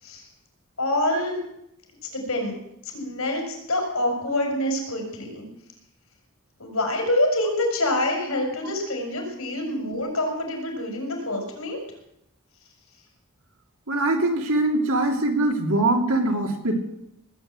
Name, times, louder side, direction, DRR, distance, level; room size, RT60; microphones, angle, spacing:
voice 1, 0.8-1.4 2.1-2.6 2.9-5.5 6.6-11.8, left 1 dB, 80° left, 2 dB, 5.9 m, -26 dB
voice 2, 13.9-16.7, right 2 dB, 85° right, 3 dB, 2.8 m, -22 dB
19.5 x 8.3 x 8.9 m, 0.79 s
head